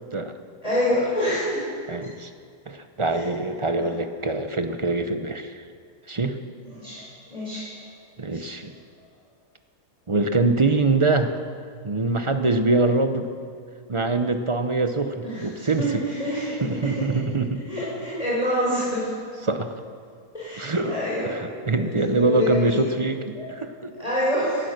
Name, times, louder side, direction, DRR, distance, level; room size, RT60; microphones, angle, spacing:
voice 1, 0.6-1.6 3.1-3.2 3.7-3.8 6.7-7.0 7.3-7.6 8.3-8.5 15.2-16.9 17.7-19.1 20.3-21.3 21.7-22.8 23.4-23.5 24.0-24.7, equal, 25° left, -9 dB, 4.2 m, -27 dB
voice 2, 1.9-2.3 2.7-5.6 6.1-6.4 8.2-8.8 10.1-11.4 11.8-13.3 13.9-16.0 16.6-17.6 19.4-19.8 20.6-21.0 21.2-23.9, right 3 dB, 30° right, 8 dB, 0.6 m, -24 dB
18.0 x 12.0 x 6.6 m, 2.1 s
omnidirectional pair, 1.5 m